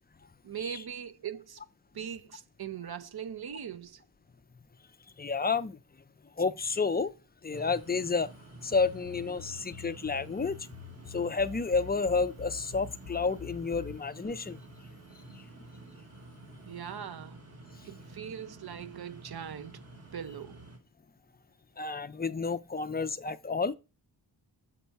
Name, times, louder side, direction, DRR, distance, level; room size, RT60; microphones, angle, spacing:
voice 1, 0.4-1.6 1.9-4.0 16.7-17.4 17.8-19.8 20.1-20.6, right 8 dB, 55° right, 0.7 m, -40 dB
voice 2, 5.2-5.8 6.4-7.1 7.4-8.3 8.6-10.6 11.1-14.6 21.8-23.7, left 4 dB, 20° left, 0.4 m, -30 dB
sound 1, 7.5-20.8, right 2 dB, 30° right, 1.3 m, -50 dB
sound 2, 8.7-14.0, left 9 dB, 65° left, 0.6 m, -47 dB
6.8 x 6.0 x 4.6 m
wide cardioid pair, 130°, 46 cm